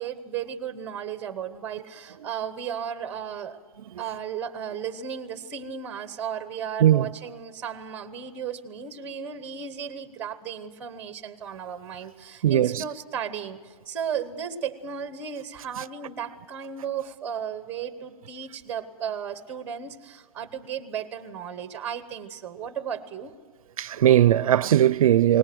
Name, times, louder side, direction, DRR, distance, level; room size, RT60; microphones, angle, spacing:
voice 1, 0.0-3.6 4.0-23.3, right 8 dB, 10° right, 1.0 m, -35 dB
voice 2, 12.4-12.8 23.8-25.4, right 11 dB, 70° right, 0.5 m, -19 dB
21.5 x 19.5 x 7.7 m
hypercardioid pair, 175°, 18 cm